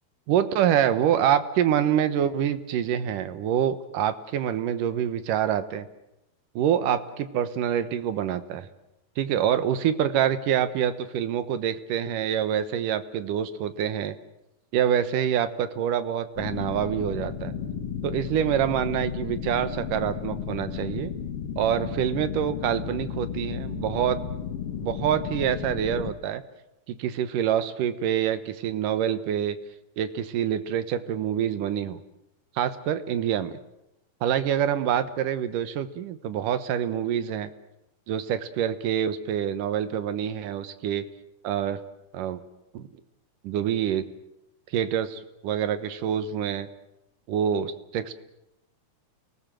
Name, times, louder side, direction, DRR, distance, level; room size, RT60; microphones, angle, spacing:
voice 1, 0.3-5.9 6.6-8.7 9.2-14.2 14.7-17.5 18.0-21.1 21.6-24.2 24.8-26.4 26.9-29.6 30.0-32.0 32.6-33.6 34.2-37.5 38.1-41.1 41.4-41.8 42.1-42.4 42.7-42.9 43.4-44.1 44.7-46.7 47.3-48.1, right 9 dB, 70° right, 11 dB, 2.6 m, -26 dB
sound 1, 16.4-26.1, left 8 dB, 50° left, 2.2 m, -34 dB
29.5 x 19.5 x 7.6 m, 0.86 s
omnidirectional pair, 4.2 m